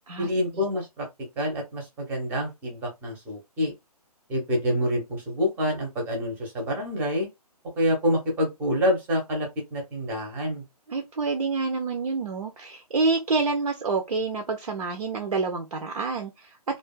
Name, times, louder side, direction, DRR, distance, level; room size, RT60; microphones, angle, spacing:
voice 1, 0.2-1.1 1.4-3.7 4.3-7.3 7.8-10.6, equal, 10° right, 0.6 m, -27 dB
voice 2, 10.9-16.5, right 4 dB, 65° right, 0.5 m, -27 dB
2.4 x 2.3 x 2.3 m
figure-of-eight pair, 135°, 20 cm